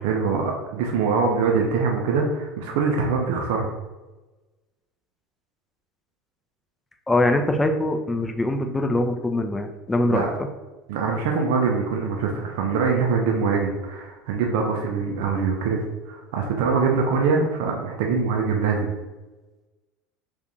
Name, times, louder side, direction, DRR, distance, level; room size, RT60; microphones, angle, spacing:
voice 1, 0.0-3.7 10.1-10.3 10.9-18.9, right 5 dB, 60° right, 0 dB, 0.4 m, -23 dB
voice 2, 7.1-10.3, left 1 dB, 15° left, 5 dB, 0.4 m, -23 dB
2.6 x 2.4 x 3.9 m, 1.1 s
figure-of-eight pair, 70°, 0 cm